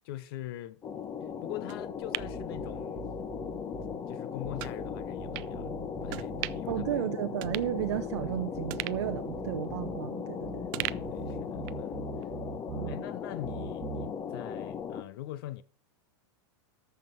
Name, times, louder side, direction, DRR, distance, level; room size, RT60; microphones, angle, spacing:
voice 1, 0.0-0.8 1.4-3.1 4.1-5.7 6.0-7.0 10.8-12.3 12.9-15.6, left 14 dB, 55° left, 0.9 m, -43 dB
sound 1, 0.8-15.0, left 7 dB, 20° left, 0.9 m, -38 dB
sound 2, 1.7-3.3 3.7-3.8 4.6-4.8 5.3-5.5 6.1-6.8 7.1-7.2 7.4-8.3 8.7-10.3 10.7-11.9 12.2-12.3, right 22 dB, 45° right, 0.4 m, -40 dB
sound 3, 2.2-4.0 4.4-7.0 7.4-10.0 10.4-13.0 13.4-14.1, right 7 dB, 25° right, 1.9 m, -43 dB
voice 2, 6.7-10.5 12.7-13.1, right 12 dB, 75° right, 0.7 m, -33 dB
13.5 x 5.9 x 4.6 m
supercardioid pair, 140°, 15 cm